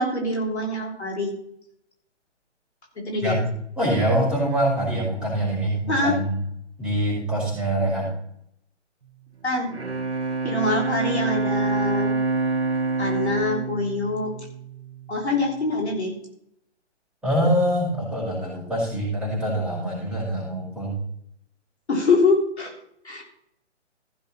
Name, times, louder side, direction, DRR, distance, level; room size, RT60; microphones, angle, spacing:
voice 1, 0.0-1.3 3.0-3.4 5.9-6.1 9.4-9.7 10.4-12.2 13.0-14.3 15.1-16.1 21.9-22.7 23.0-23.2, left 2 dB, 65° left, 0 dB, 3.5 m, -24 dB
voice 2, 3.8-6.5 6.8-8.1 17.2-21.0, right 1 dB, ahead, -7 dB, 5.0 m, -24 dB
Bowed string instrument, 9.5-15.2, right 3 dB, 60° right, 1.9 m, -26 dB
15.0 x 6.9 x 4.3 m, 0.72 s
figure-of-eight pair, 140°, 36 cm